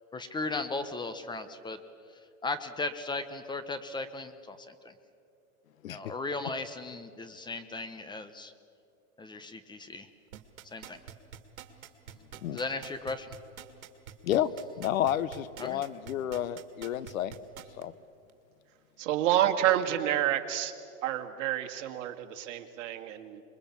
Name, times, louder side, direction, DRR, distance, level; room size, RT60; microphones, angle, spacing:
voice 1, 0.1-1.8 2.4-4.9 5.9-8.5 9.2-10.1 10.7-11.0 12.5-13.3 15.6-15.8, left 3 dB, 10° left, 10 dB, 0.9 m, -36 dB
sound 1, 10.3-17.8 18.3-18.4, right 10 dB, 75° right, 2.2 m, -46 dB
voice 2, 14.8-17.3 17.8-17.9, left 11 dB, 75° left, 17 dB, 1.2 m, -30 dB
voice 3, 19.0-20.7 21.0-23.4, right 12 dB, 60° right, 5 dB, 2.2 m, -28 dB
27.0 x 22.0 x 7.3 m, 2.6 s
hypercardioid pair, 135°, 41 cm